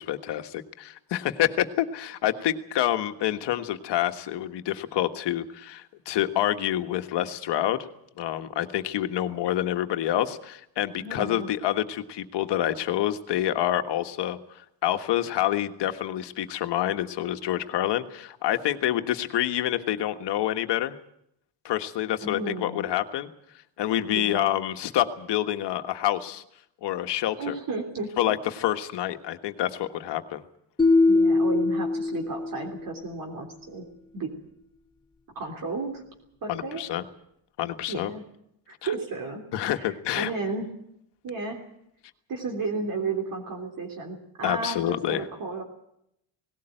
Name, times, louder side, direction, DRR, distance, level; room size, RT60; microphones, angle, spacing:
voice 1, 0.0-7.9 8.2-14.4 14.8-21.0 21.6-23.3 23.8-26.4 26.8-27.6 28.2-30.4 36.5-37.0 37.6-38.1 38.8-38.9 39.5-40.3 44.4-45.3, left 12 dB, 60° left, 8 dB, 1.5 m, -27 dB
voice 2, 11.0-11.5 22.2-22.9 24.1-24.5 27.4-28.3 31.1-33.9 34.1-34.3 35.3-36.0 36.4-36.8 37.9-38.2 38.7-40.7 41.2-41.6 42.3-45.6, right 3 dB, 45° right, 2 dB, 3.4 m, -33 dB
sound 1, 30.8-32.9, left 3 dB, 10° left, 1.3 m, -22 dB
18.5 x 17.0 x 9.0 m, 0.76 s
cardioid pair, 130°, 47 cm